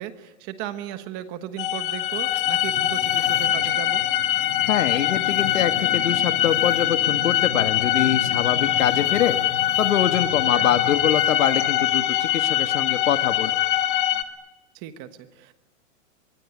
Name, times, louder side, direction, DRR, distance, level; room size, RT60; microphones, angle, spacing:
voice 1, 0.0-4.0 10.5-10.7 14.7-15.5, right 11 dB, 25° right, 10 dB, 1.3 m, -36 dB
sound 1, 1.6-14.2, left 11 dB, 40° left, 1.8 m, -23 dB
voice 2, 4.7-9.4 9.8-13.5, left 10 dB, 85° left, 8 dB, 1.9 m, -24 dB
25.5 x 22.5 x 9.9 m, 1.1 s
hypercardioid pair, 170°, 39 cm